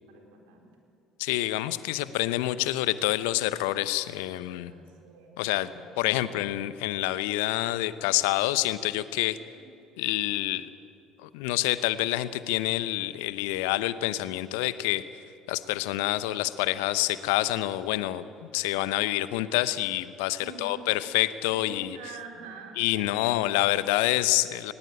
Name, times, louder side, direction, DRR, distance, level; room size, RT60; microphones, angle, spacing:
voice 1, 0.1-0.7 4.6-6.0 9.5-9.7 20.4-20.9 21.5-23.7, right 5 dB, 70° right, 2 dB, 4.0 m, -47 dB
voice 2, 1.2-4.7 5.4-9.4 10.0-10.7 11.2-15.0 15.5-18.2 18.5-22.0 22.8-24.7, left 16 dB, 65° left, 15 dB, 0.8 m, -27 dB
20.0 x 19.5 x 8.9 m, 2.6 s
figure-of-eight pair, 60°, 0 cm